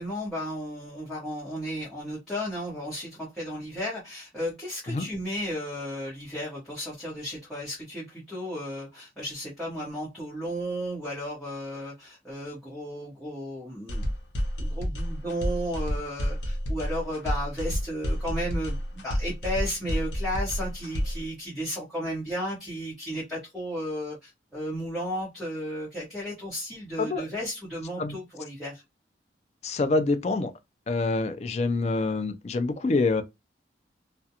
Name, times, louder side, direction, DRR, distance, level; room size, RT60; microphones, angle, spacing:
voice 1, 0.0-14.1 14.6-28.8, equal, ahead, 0.9 m, -34 dB
sound 1, 13.9-21.3, equal, 75° left, 0.7 m, -30 dB
voice 2, 29.6-30.5 30.9-33.2, left 3 dB, 35° left, 0.3 m, -26 dB
2.4 x 2.1 x 2.7 m
head